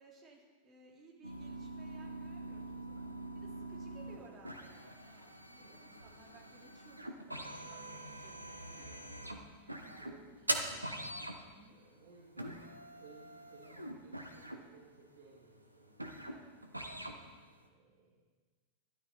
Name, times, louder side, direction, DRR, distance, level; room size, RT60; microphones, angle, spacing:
voice 1, 0.0-3.0 3.3-8.9 9.7-10.0 11.4-11.8 16.3-16.5 16.8-17.0, right 3 dB, 25° right, -2 dB, 2.8 m, -60 dB
sound 1, 1.2-17.6, right 1 dB, 85° right, 1.0 m, -44 dB
voice 2, 5.6-6.2 6.4-6.5 7.8-7.9 8.3-9.7 10.0-11.1 11.7-16.1 17.6-18.2, right 3 dB, 55° right, -2 dB, 2.1 m, -61 dB
12.5 x 12.0 x 4.1 m, 1.4 s
figure-of-eight pair, 90°, 0 cm